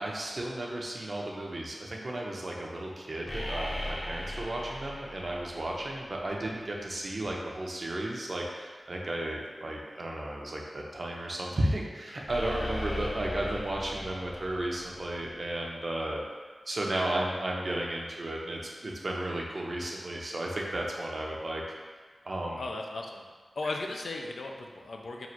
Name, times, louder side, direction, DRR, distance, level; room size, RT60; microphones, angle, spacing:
voice 1, 0.0-16.2 16.7-21.6 22.2-22.6 23.6-23.7, right 1 dB, 55° right, -2 dB, 0.7 m, -34 dB
sound 1, 3.3-6.5 12.3-15.6, left 1 dB, 35° left, 0.7 m, -38 dB
voice 2, 22.6-23.2 23.6-25.3, left 2 dB, 90° left, 2 dB, 0.4 m, -36 dB
3.9 x 2.5 x 4.4 m, 1.5 s
wide cardioid pair, 60°, 0 cm